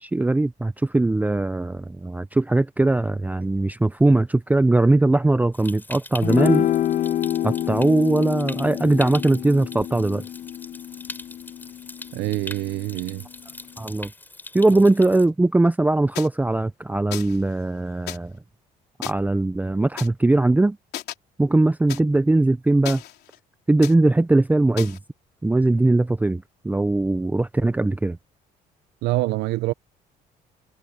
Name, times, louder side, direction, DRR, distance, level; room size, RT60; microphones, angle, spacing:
voice 1, 0.0-6.7 7.4-10.2 13.8-14.1 14.5-18.3 19.0-20.8 21.4-23.0 23.7-25.0 25.4-28.2, right 2 dB, 10° right, 0.7 m, -20 dB
Stream, 5.5-15.3, left 2 dB, 10° left, 7.5 m, -41 dB
sound 1, 6.2-12.8, left 12 dB, 45° left, 0.4 m, -27 dB
voice 2, 12.1-13.2 14.7-14.8 29.0-29.7, right 18 dB, 85° right, 0.7 m, -25 dB
sound 2, 16.1-16.3 17.1-17.4 18.1-18.2 19.0-19.1 20.0-20.1 20.9-21.1 21.9-22.0 22.9-23.4 23.8-23.9 24.8-25.0, left 13 dB, 70° left, 3.5 m, -34 dB
cardioid pair, 110°, 17 cm